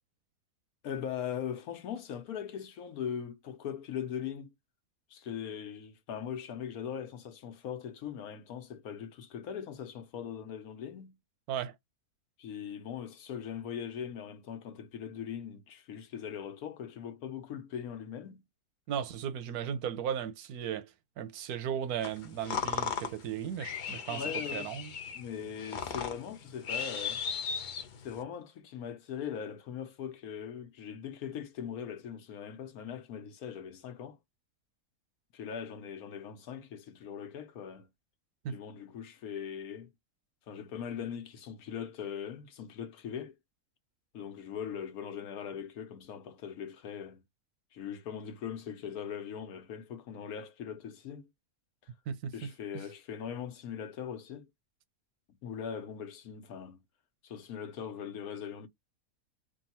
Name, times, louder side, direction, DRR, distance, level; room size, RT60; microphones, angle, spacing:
voice 1, 0.8-4.5 5.1-11.2 12.4-18.4 24.1-24.7 25.1-27.2 28.0-34.2 35.3-37.9 38.5-39.9 40.5-43.4 44.1-47.2 47.7-51.3 52.3-54.5 55.4-56.8 57.2-58.7, left 8 dB, 80° left, 1.3 m, -40 dB
voice 2, 18.9-24.2 24.5-24.9 38.4-38.6 52.1-52.8, right 8 dB, 85° right, 1.1 m, -36 dB
sound 1, 22.0-28.2, left 6 dB, 55° left, 0.5 m, -37 dB
3.6 x 2.3 x 4.2 m
omnidirectional pair, 1.5 m